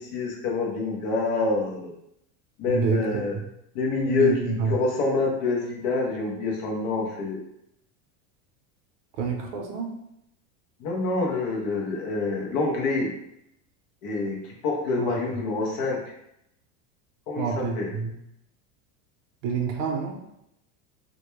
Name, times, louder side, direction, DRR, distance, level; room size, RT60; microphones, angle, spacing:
voice 1, 0.0-1.9 2.6-3.4 3.7-7.4 10.8-13.1 14.0-14.4 14.6-16.0 17.3-17.9, left 3 dB, 45° left, -1 dB, 0.5 m, -26 dB
voice 2, 2.7-3.2 4.1-4.8 9.2-9.9 15.0-15.2 17.4-18.1 19.4-20.2, right 5 dB, 70° right, 2 dB, 0.6 m, -27 dB
2.1 x 2.1 x 3.0 m, 0.79 s
supercardioid pair, 175°, 39 cm